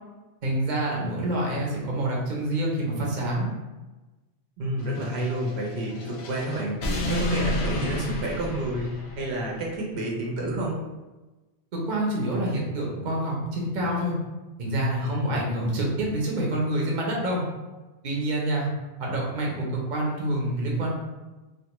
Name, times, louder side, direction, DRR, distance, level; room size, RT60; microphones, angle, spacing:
voice 1, 0.4-3.5 11.7-14.1 14.6-17.4 18.0-18.7 19.0-20.9, right 1 dB, 55° right, -3 dB, 0.8 m, -27 dB
voice 2, 4.6-6.8 7.1-8.9 9.2-10.8 15.0-15.4, right 1 dB, 85° right, -3 dB, 0.9 m, -29 dB
sound 1, 4.8-9.6, left 1 dB, 85° left, 0.8 m, -31 dB
2.5 x 2.2 x 2.9 m, 1.1 s
omnidirectional pair, 1.1 m